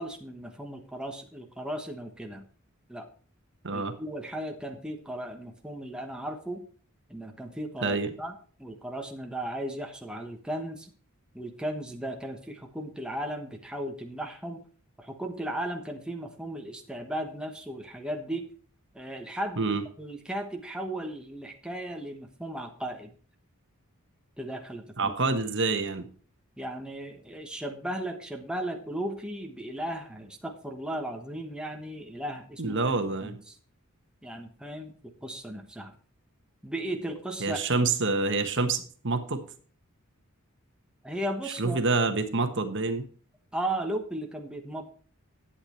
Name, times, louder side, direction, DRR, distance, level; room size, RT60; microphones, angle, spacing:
voice 1, 0.0-2.4 2.9-3.1 3.7-6.7 7.1-8.3 8.6-10.9 11.3-14.6 15.0-18.5 18.9-23.1 24.4-25.1 26.6-32.9 33.2-33.5 34.2-35.9 36.6-37.6 41.0-41.8 43.5-44.9, right 1 dB, 5° right, 2 dB, 1.2 m, -36 dB
voice 2, 7.8-8.1 19.6-19.8 25.0-26.1 32.6-33.4 37.4-39.4 41.5-43.1, right 3 dB, 55° right, 7 dB, 1.4 m, -27 dB
11.5 x 8.7 x 4.4 m, 0.42 s
head